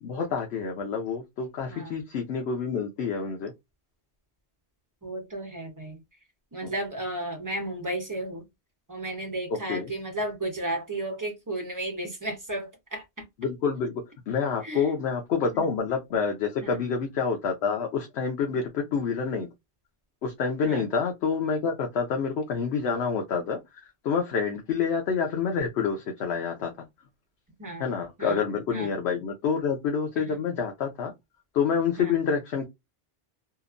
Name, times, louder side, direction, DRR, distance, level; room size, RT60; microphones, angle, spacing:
voice 1, 0.0-3.5 6.6-6.7 9.7-9.9 13.4-13.9 14.3-19.5 20.2-26.7 27.8-31.1 31.5-32.7, left 6 dB, 75° left, 0.9 m, -28 dB
voice 2, 1.7-2.0 5.0-6.0 6.5-8.4 8.9-13.2 14.6-14.9 15.5-15.7 16.6-16.8 20.6-20.8 24.7-24.8 27.6-27.8 28.2-28.4 28.7-28.9 30.2-30.4 32.0-32.2, right 1 dB, 20° right, 0.9 m, -34 dB
2.9 x 2.1 x 2.4 m
omnidirectional pair, 1.1 m